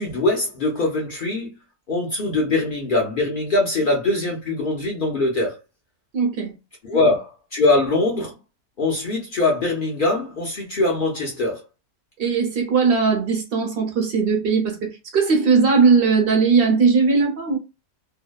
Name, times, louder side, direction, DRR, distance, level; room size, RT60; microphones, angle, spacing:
voice 1, 0.0-1.5 1.9-5.6 6.8-8.3 8.8-11.6, left 2 dB, 70° left, 0.4 m, -22 dB
voice 2, 6.1-6.5 12.2-17.6, right 5 dB, 55° right, 0.6 m, -19 dB
2.7 x 2.1 x 2.2 m
omnidirectional pair, 1.7 m